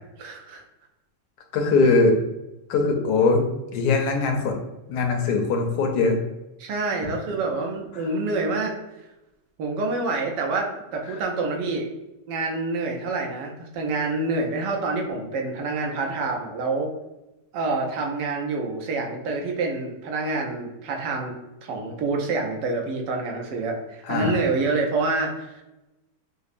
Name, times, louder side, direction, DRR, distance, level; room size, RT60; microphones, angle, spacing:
voice 1, 0.2-0.6 6.6-8.7 9.6-11.9 12.3-16.9 17.5-21.3 21.6-25.5, right 3 dB, 80° right, 2 dB, 1.3 m, -27 dB
voice 2, 1.5-2.2 2.7-3.5 3.7-4.5 4.9-6.2 7.9-8.1 11.1-11.2 24.0-24.4, left 3 dB, 70° left, 3 dB, 1.1 m, -21 dB
5.3 x 2.0 x 2.5 m, 0.96 s
omnidirectional pair, 1.9 m